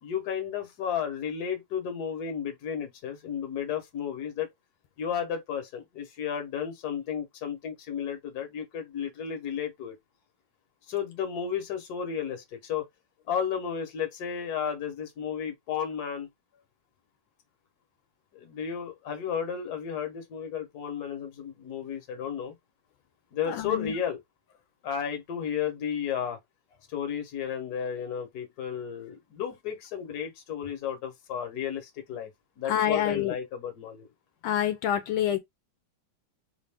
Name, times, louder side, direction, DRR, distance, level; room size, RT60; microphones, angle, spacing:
voice 1, 0.0-4.5 5.0-10.0 10.9-12.9 13.3-16.3 18.3-22.5 23.3-24.2 24.8-26.4 26.9-32.3 32.6-34.1, left 8 dB, 60° left, 1.4 m, -33 dB
voice 2, 23.5-23.9 32.6-33.3 34.4-35.4, left 10 dB, 85° left, 1.4 m, -27 dB
3.4 x 2.5 x 3.4 m
omnidirectional pair, 2.1 m